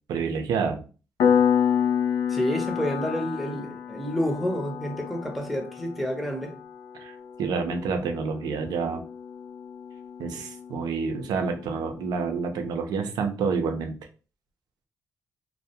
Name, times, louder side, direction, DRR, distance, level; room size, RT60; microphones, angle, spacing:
voice 1, 0.1-0.8 7.0-7.1 7.4-9.0 10.2-14.0, right 5 dB, 85° right, 0.5 m, -28 dB
Piano, 1.2-11.6, left 8 dB, 85° left, 0.4 m, -29 dB
voice 2, 2.3-6.5, equal, ahead, 0.6 m, -29 dB
2.2 x 2.1 x 2.8 m
cardioid pair, 90°, 7 cm